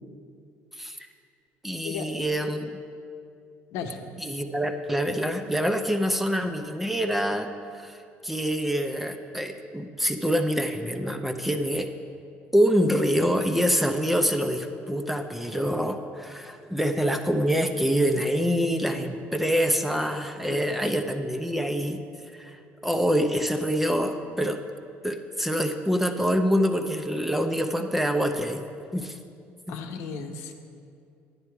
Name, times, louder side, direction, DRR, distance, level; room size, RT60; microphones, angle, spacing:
voice 1, 1.6-2.8 4.2-8.0 8.2-11.9 12.5-22.0 22.3-24.6 25.0-28.6 28.9-29.2 29.7-29.8, equal, 5° right, 6 dB, 0.6 m, -26 dB
voice 2, 29.7-30.5, left 6 dB, 80° left, 5 dB, 0.9 m, -35 dB
9.7 x 9.6 x 4.6 m, 2.4 s
cardioid pair, 120°, 5 cm